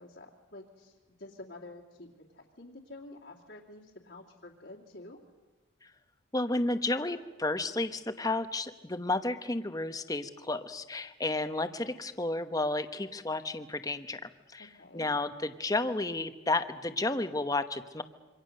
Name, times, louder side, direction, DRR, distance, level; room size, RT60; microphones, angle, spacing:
voice 1, 0.0-5.2 14.6-15.1, left 2 dB, 65° left, -4 dB, 2.5 m, -49 dB
voice 2, 6.3-18.0, left 2 dB, 20° left, 10 dB, 1.0 m, -32 dB
27.0 x 25.0 x 6.6 m, 1.2 s
head